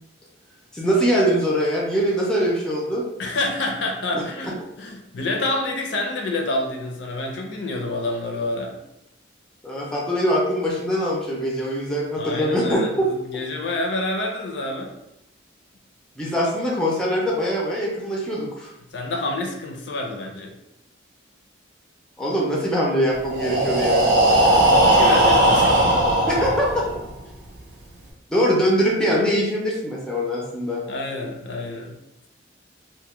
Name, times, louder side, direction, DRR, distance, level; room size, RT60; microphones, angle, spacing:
voice 1, 0.7-3.0 4.1-4.5 9.6-13.1 16.2-18.7 22.2-24.2 26.3-26.8 28.3-30.8, equal, 5° left, -4 dB, 0.3 m, -23 dB
voice 2, 3.2-8.8 12.2-14.9 18.9-20.5 24.4-25.8 30.9-31.9, left 2 dB, 65° left, 1 dB, 0.5 m, -28 dB
Breathing, 23.2-27.1, right 1 dB, 65° right, 0.6 m, -18 dB
2.2 x 2.1 x 2.9 m, 0.86 s
head